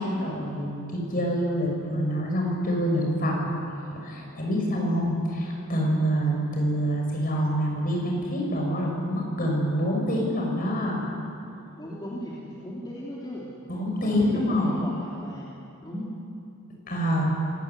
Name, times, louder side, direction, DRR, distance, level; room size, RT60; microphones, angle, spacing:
voice 1, 0.0-3.5 3.9-11.0 13.7-14.7 16.9-17.3, equal, 40° left, -1 dB, 6.6 m, -26 dB
voice 2, 11.8-13.5 14.0-15.5 15.8-16.1, equal, 20° left, -6 dB, 3.2 m, -37 dB
26.0 x 17.0 x 9.6 m, 2.6 s
head